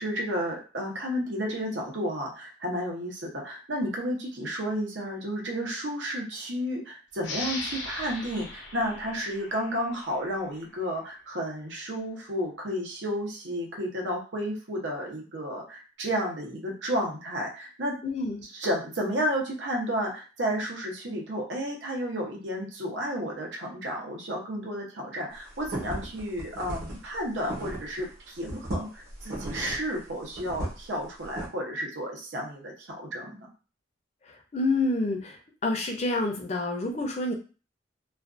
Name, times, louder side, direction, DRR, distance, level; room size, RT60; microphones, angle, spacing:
voice 1, 0.0-17.9 18.5-33.5 36.8-37.0, equal, 85° right, -1 dB, 0.8 m, -32 dB
sound 1, 7.2-10.5, left 3 dB, 90° left, 0.7 m, -38 dB
voice 2, 18.0-18.4 34.5-35.4 35.6-37.3, left 2 dB, 35° left, 2 dB, 0.5 m, -28 dB
sound 2, 25.4-28.1 28.4-31.5, right 1 dB, 55° right, 1.0 m, -36 dB
2.4 x 2.3 x 2.5 m, 0.35 s
head